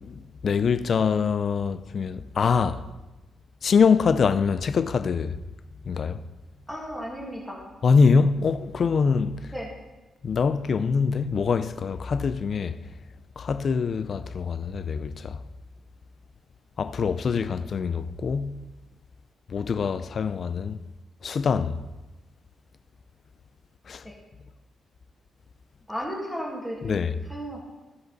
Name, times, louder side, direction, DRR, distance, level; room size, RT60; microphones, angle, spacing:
voice 1, 0.0-2.8 3.6-5.4 5.9-6.2 7.8-9.5 10.2-12.7 13.4-15.4 16.8-18.6 19.5-20.8 21.2-21.8 23.9-24.0 26.8-27.1, left 5 dB, 45° left, 0.4 m, -24 dB
voice 2, 6.7-7.7 9.5-9.7 24.0-24.2 25.9-27.6, equal, 5° right, 1.9 m, -34 dB
15.5 x 5.2 x 4.0 m
wide cardioid pair, 150°, 0 cm